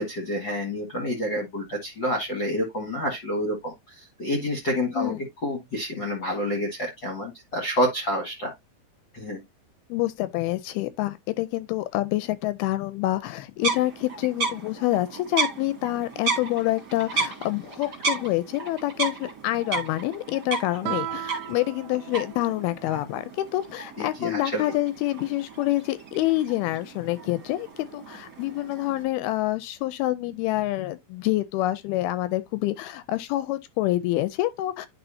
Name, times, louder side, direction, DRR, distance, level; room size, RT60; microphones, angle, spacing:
voice 1, 0.0-5.1 5.4-8.5 9.1-9.4 24.0-24.6, equal, 45° left, 1.5 m, -28 dB
voice 2, 9.9-34.9, left 16 dB, 80° left, 2.4 m, -27 dB
sound 1, 13.6-29.0, right 4 dB, 35° right, 2.0 m, -34 dB
Guitar, 20.8-23.3, right 12 dB, 80° right, 2.4 m, -36 dB
11.0 x 4.1 x 2.7 m
omnidirectional pair, 4.7 m